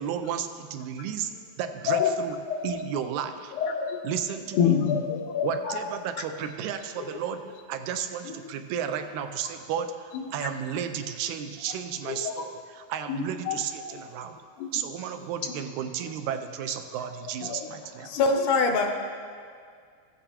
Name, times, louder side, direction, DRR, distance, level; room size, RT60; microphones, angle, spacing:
voice 1, 0.0-2.4 2.6-3.5 4.0-4.7 5.4-12.5 12.9-14.4 14.7-18.1, right 8 dB, 85° right, 8 dB, 2.0 m, -33 dB
voice 2, 1.9-2.2 2.5-2.8 3.5-4.1 4.5-5.9 7.0-7.2 8.2-8.5 10.1-10.5 12.0-12.5 13.1-14.0 14.6-14.8 15.4-15.5 17.2-17.7, left 8 dB, 90° left, 4 dB, 2.3 m, -28 dB
voice 3, 18.0-18.9, left 3 dB, 75° left, 4 dB, 1.7 m, -23 dB
15.5 x 8.8 x 2.9 m, 2.1 s
omnidirectional pair, 3.4 m